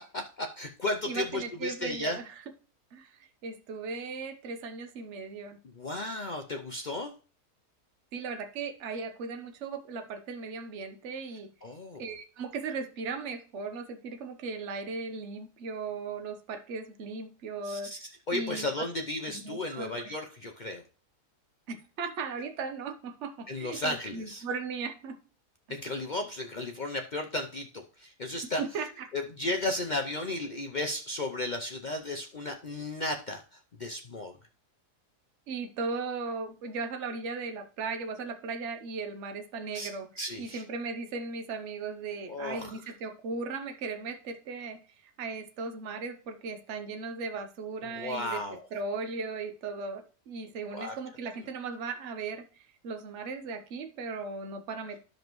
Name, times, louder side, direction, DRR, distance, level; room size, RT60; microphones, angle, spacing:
voice 1, 0.1-2.2 5.7-7.1 11.6-12.0 17.6-20.8 23.5-24.4 25.7-28.6 29.1-34.4 39.7-39.9 40.2-40.6 42.3-42.8 47.8-48.6 50.7-50.9, left 2 dB, 65° left, 4 dB, 0.4 m, -34 dB
voice 2, 1.0-2.3 2.9-5.6 8.1-11.5 12.0-17.9 18.3-18.9 19.2-20.1 21.7-25.2 25.7-25.8 28.6-29.1 35.5-40.1 40.4-48.4 48.7-55.0, right 4 dB, 55° right, 8 dB, 1.1 m, -37 dB
13.0 x 5.2 x 3.0 m, 0.38 s
omnidirectional pair, 1.7 m